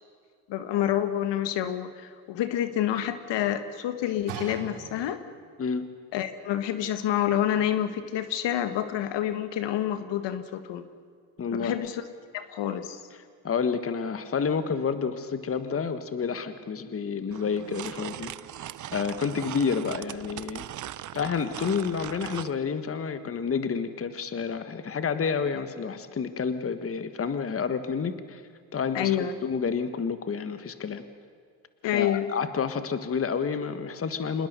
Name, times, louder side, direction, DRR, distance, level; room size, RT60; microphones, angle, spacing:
voice 1, 0.5-5.2 6.1-10.8 11.5-12.0 12.3-13.0 28.9-29.3 31.8-32.3, left 11 dB, 60° left, 10 dB, 1.7 m, -28 dB
sound 1, 4.3-5.5 6.3-6.4, right 7 dB, 70° right, 4.6 m, -40 dB
voice 2, 11.4-11.8 13.4-18.3 18.9-20.6 21.1-28.4 28.7-31.0 31.9-34.5, left 6 dB, 30° left, 10 dB, 1.5 m, -29 dB
sound 2, 17.3-22.5, right 13 dB, 40° right, 0.7 m, -39 dB
26.5 x 20.5 x 6.8 m, 2.1 s
supercardioid pair, 85°, 49 cm